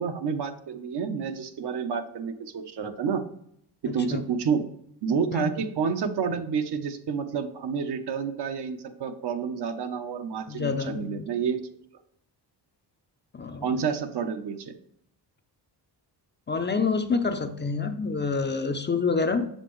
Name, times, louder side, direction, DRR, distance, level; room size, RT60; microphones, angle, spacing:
voice 1, 0.0-3.3 3.8-4.6 5.0-11.6 13.6-14.7, right 6 dB, 70° right, 7 dB, 0.8 m, -29 dB
voice 2, 3.9-4.2 5.3-5.4 10.5-11.2 13.3-13.8 16.5-19.5, left 4 dB, 25° left, 8 dB, 0.4 m, -27 dB
6.9 x 6.7 x 3.1 m, 0.71 s
wide cardioid pair, 125°, 42 cm